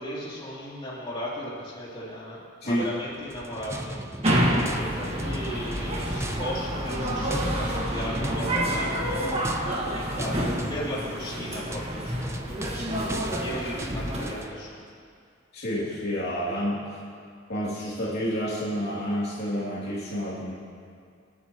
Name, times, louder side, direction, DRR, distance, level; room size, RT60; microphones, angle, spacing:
voice 1, 0.0-3.9 4.6-9.4 9.8-14.8, equal, 30° left, -7 dB, 3.4 m, -36 dB
sound 1, 3.2-14.6, right 1 dB, 15° right, 0.6 m, -37 dB
sound 2, 4.2-14.4, equal, 30° right, 1.8 m, -28 dB
voice 2, 15.5-16.8 17.5-20.6, equal, 55° left, -8 dB, 2.8 m, -29 dB
26.0 x 9.6 x 3.1 m, 2.3 s
head